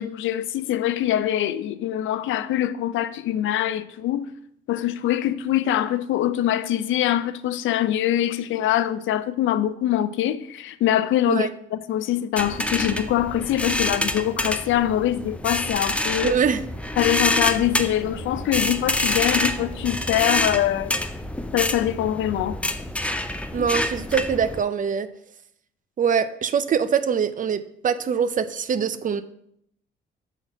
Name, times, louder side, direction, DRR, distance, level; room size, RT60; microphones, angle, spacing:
voice 1, 0.0-4.3 4.7-16.4 17.0-20.9 21.5-22.6, left 12 dB, 75° left, 0.5 m, -24 dB
sound 1, 12.4-24.6, left 1 dB, 5° left, 0.5 m, -27 dB
voice 2, 16.2-16.6 23.5-25.1 26.0-29.2, right 7 dB, 40° right, 0.5 m, -23 dB
5.8 x 4.0 x 5.8 m
cardioid pair, 90°, 20 cm